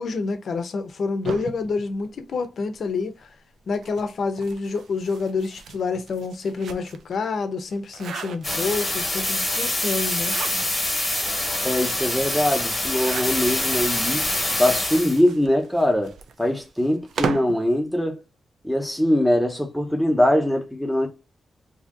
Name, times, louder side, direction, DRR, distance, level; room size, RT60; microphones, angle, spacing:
voice 1, 0.0-3.3 3.7-10.4, left 4 dB, 60° left, 0.6 m, -28 dB
sound 1, 1.2-2.8 3.7-7.2 7.6-9.0 10.0-11.0 11.5-11.6 11.8-11.9 12.8-13.7 14.4-17.6, right 6 dB, 90° right, 0.4 m, -36 dB
sound 2, 8.4-15.2, left 1 dB, 15° left, 1.1 m, -25 dB
voice 2, 11.6-14.2 14.6-18.2 18.6-21.1, left 1 dB, ahead, 0.8 m, -22 dB
2.8 x 2.7 x 3.7 m
wide cardioid pair, 165°, 0 cm